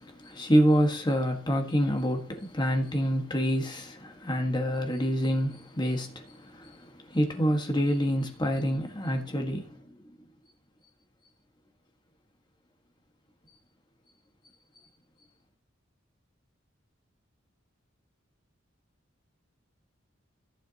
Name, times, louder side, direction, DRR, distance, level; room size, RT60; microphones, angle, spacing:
voice 1, 0.2-6.2 6.6-6.7 7.1-9.7, equal, 20° left, 1.7 m, -26 dB
14.5 x 7.2 x 2.9 m
head